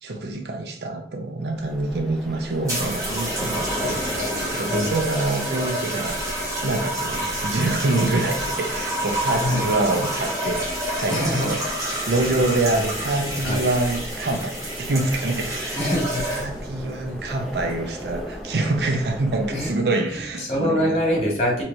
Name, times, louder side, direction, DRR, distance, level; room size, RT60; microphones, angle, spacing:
voice 1, 0.0-4.0 4.5-6.2 6.6-10.6 10.9-11.6 12.1-15.8 16.3-21.0, right 2 dB, 65° right, 5 dB, 0.6 m, -25 dB
sound 1, 1.4-19.7, equal, ahead, 0.5 m, -36 dB
sound 2, 2.7-16.7 17.6-17.9, right 1 dB, 20° right, 1.1 m, -29 dB
voice 2, 11.1-11.5 12.2-12.4 13.4-13.7 15.7-16.2 19.5-19.8 20.1-21.6, left 1 dB, 35° left, -4 dB, 1.6 m, -24 dB
4.5 x 3.0 x 2.6 m, 0.63 s
head